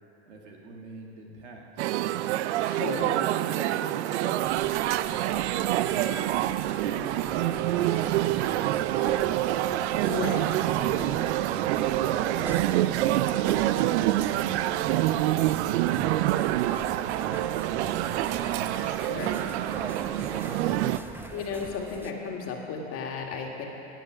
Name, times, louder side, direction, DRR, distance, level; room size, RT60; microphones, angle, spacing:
voice 1, 0.3-2.1 2.9-6.0 6.7-8.0 14.8-20.2 20.7-21.2, right 3 dB, 90° right, 0 dB, 2.1 m, -44 dB
sound 1, 1.8-21.0, right 14 dB, 70° right, 0.5 m, -26 dB
voice 2, 2.6-3.1 10.1-10.4 18.8-19.3 21.3-23.6, left 5 dB, 40° left, 1 dB, 2.0 m, -34 dB
sound 2, 4.4-22.1, right 1 dB, 5° right, 0.8 m, -42 dB
17.5 x 6.6 x 6.2 m, 2.9 s
hypercardioid pair, 105°, 34 cm